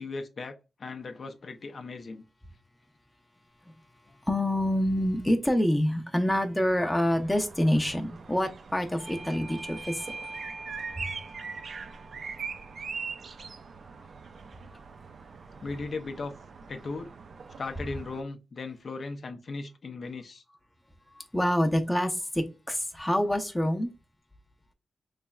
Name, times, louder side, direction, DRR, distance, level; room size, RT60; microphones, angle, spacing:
voice 1, 0.0-2.2 15.6-16.3 16.7-17.1 17.6-20.4, left 3 dB, 55° left, 0.4 m, -37 dB
voice 2, 4.3-10.0 11.0-11.1 21.3-23.9, equal, 10° left, 0.5 m, -26 dB
sound 1, 7.1-18.2, right 5 dB, 65° right, 0.3 m, -42 dB
Bell / Doorbell, 9.0-14.2, right 3 dB, 45° right, 0.8 m, -45 dB
3.9 x 3.3 x 2.2 m
wide cardioid pair, 100°, 0 cm